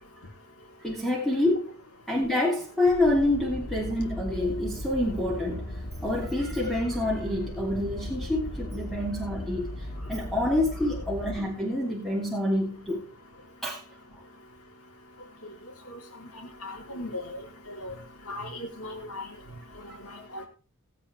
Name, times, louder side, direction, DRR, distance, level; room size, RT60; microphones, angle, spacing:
voice 1, 0.8-1.7 2.1-5.7 6.0-13.1 13.6-13.8 20.4-20.5, left 1 dB, ahead, 2.8 m, -27 dB
sound 1, 2.9-11.4, left 1 dB, 40° left, 1.8 m, -37 dB
voice 2, 16.6-17.2 17.8-17.9 18.3-19.2 20.3-20.5, left 1 dB, 80° left, 3.2 m, -36 dB
18.0 x 8.6 x 3.4 m
head